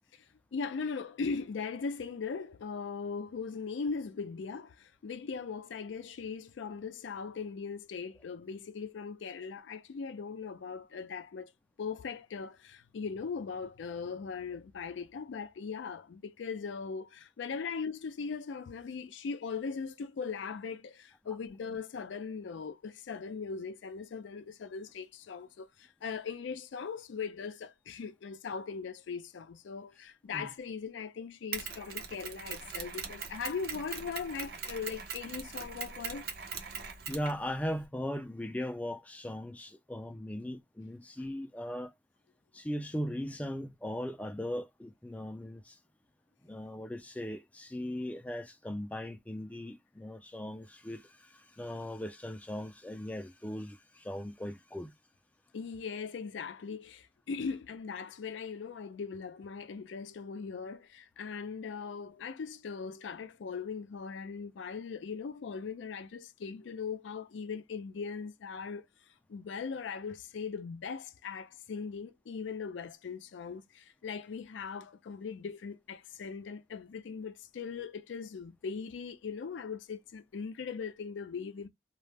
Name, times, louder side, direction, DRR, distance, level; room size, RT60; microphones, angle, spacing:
voice 1, 0.5-11.5 11.8-36.3 55.5-68.9 69.3-81.7, left 5 dB, 85° left, 0.4 m, -39 dB
Mechanisms, 31.5-37.9, right 6 dB, 55° right, 0.5 m, -41 dB
voice 2, 37.1-41.9 42.5-45.8 46.4-54.9, left 1 dB, 10° left, 0.3 m, -38 dB
2.3 x 2.0 x 3.3 m
head